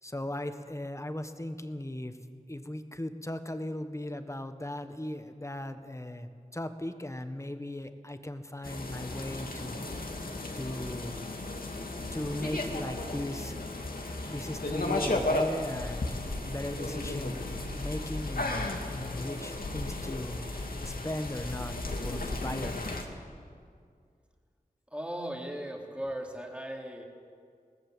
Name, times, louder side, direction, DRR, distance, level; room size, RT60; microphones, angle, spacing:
voice 1, 0.0-2.2 2.5-9.8 10.5-11.2 12.1-13.7 14.2-20.5 20.8-21.7 22.0-22.9, left 1 dB, 20° left, 8 dB, 1.4 m, -38 dB
sound 1, 8.6-23.0, left 2 dB, 80° left, 2.3 m, -34 dB
voice 2, 24.9-27.1, right 1 dB, 10° right, 0 dB, 3.3 m, -37 dB
21.5 x 18.5 x 7.9 m, 2.2 s
wide cardioid pair, 65°, 15 cm